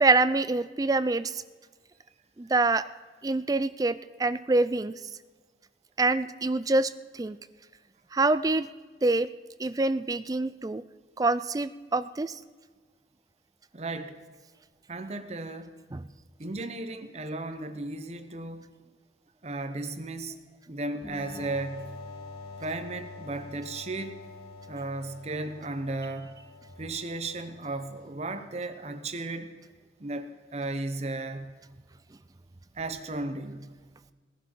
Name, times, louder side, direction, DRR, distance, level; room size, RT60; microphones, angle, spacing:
voice 1, 0.0-1.4 2.4-2.9 3.2-5.0 6.0-7.4 8.1-8.7 9.0-9.3 9.6-10.8 11.2-12.3 15.9-16.0, right 3 dB, 20° right, 14 dB, 0.4 m, -25 dB
voice 2, 13.7-14.2 14.9-15.7 16.4-18.6 19.4-20.3 20.7-21.9 22.6-24.3 24.7-26.4 26.8-29.5 30.0-31.5 32.8-33.7, right 2 dB, 35° right, 9 dB, 0.8 m, -35 dB
sound 1, 21.0-28.5, left 3 dB, 35° left, 3.4 m, -46 dB
18.5 x 11.0 x 4.5 m, 1.4 s
head